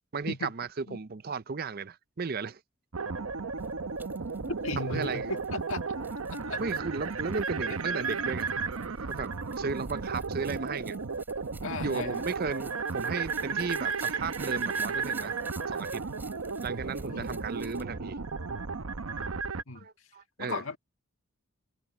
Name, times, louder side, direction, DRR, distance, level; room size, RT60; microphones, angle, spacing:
voice 1, 0.1-2.6 4.8-5.3 6.6-8.5 8.9-9.3 9.6-11.0 11.8-15.4 15.7-16.0 16.6-18.2 19.7-20.6, right 4 dB, 45° right, 0.5 m, -35 dB
sound 1, 2.9-19.6, right 4 dB, 80° right, 0.9 m, -34 dB
sound 2, 3.6-17.8, right 3 dB, 10° right, 3.5 m, -54 dB
voice 2, 4.5-5.8 6.3-6.6 11.6-12.3 17.1-17.3 19.7-19.9 20.4-20.8, left 3 dB, 70° left, 1.6 m, -36 dB
open air
head